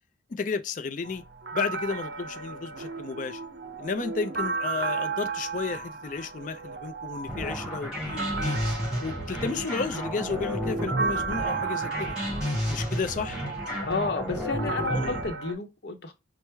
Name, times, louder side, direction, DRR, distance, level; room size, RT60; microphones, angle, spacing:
voice 1, 0.3-1.2 1.5-3.4 3.8-8.6 9.0-12.2 12.7-13.4 15.0-15.2, left 4 dB, 45° left, 0.4 m, -33 dB
sound 1, 1.0-15.5, right 4 dB, 65° right, 0.6 m, -35 dB
sound 2, 7.2-15.3, equal, 5° right, 2.1 m, -32 dB
voice 2, 13.8-16.1, left 3 dB, 65° left, 0.8 m, -31 dB
4.6 x 2.1 x 3.3 m
head